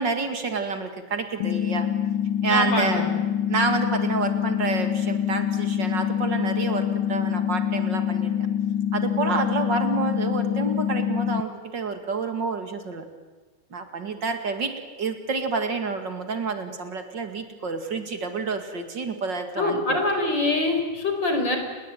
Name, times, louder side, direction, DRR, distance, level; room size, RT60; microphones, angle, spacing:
voice 1, 0.0-1.9 2.4-3.1 3.5-8.3 8.9-13.1 13.7-14.7 15.0-20.0, right 4 dB, 55° right, 7 dB, 2.9 m, -28 dB
sound 1, 1.4-11.4, left 9 dB, 70° left, 1.8 m, -25 dB
voice 2, 2.5-3.1 19.6-21.6, left 2 dB, 55° left, 4 dB, 5.5 m, -24 dB
30.0 x 20.5 x 9.2 m, 1.3 s
omnidirectional pair, 2.3 m